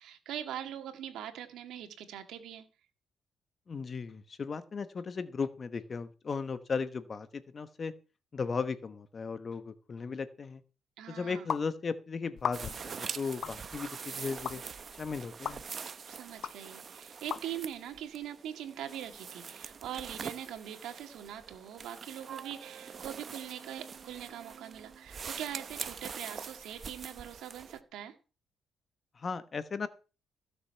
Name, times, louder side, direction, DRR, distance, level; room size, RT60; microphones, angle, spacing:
voice 1, 0.0-2.7 11.0-11.5 16.1-28.1, right 10 dB, 85° right, 7 dB, 2.0 m, -42 dB
voice 2, 3.7-7.9 8.3-10.6 11.1-14.6 15.0-15.6 29.2-29.9, left 5 dB, 40° left, 12 dB, 1.1 m, -36 dB
sound 1, 11.5-11.6 12.4-12.9 13.4-13.6 14.4-14.6 15.4-15.6 16.4-16.5 17.3-17.4, left 8 dB, 60° left, 0.6 m, -34 dB
sound 2, 12.5-27.8, right 6 dB, 45° right, 0.8 m, -44 dB
Wind instrument woodwind instrument, 22.2-25.1, right 8 dB, 65° right, 2.6 m, -51 dB
16.0 x 6.8 x 5.7 m, 0.34 s
cardioid pair, 90°, 0 cm